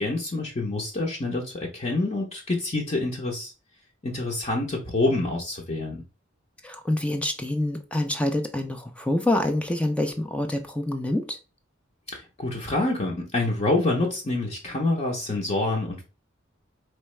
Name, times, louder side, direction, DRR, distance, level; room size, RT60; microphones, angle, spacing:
voice 1, 0.0-3.5 4.0-6.0 12.1-16.0, left 2 dB, 35° left, 0.8 m, -27 dB
voice 2, 6.6-11.4, left 1 dB, 5° left, 0.4 m, -26 dB
4.5 x 3.2 x 3.2 m
head